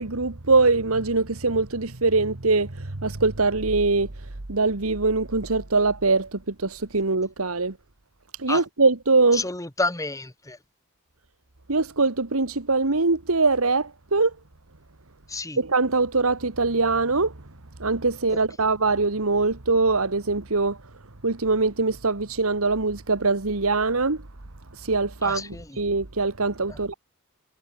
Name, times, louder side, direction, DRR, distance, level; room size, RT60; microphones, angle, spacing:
voice 1, 0.0-7.8 8.3-9.4 11.7-14.3 15.6-17.3 17.8-20.8 21.2-24.2 24.7-26.9, right 3 dB, 80° right, 1.7 m, -23 dB
voice 2, 9.3-10.6 15.3-15.6 18.3-18.4 25.2-25.8 26.7-26.8, left 2 dB, 15° left, 1.7 m, -30 dB
head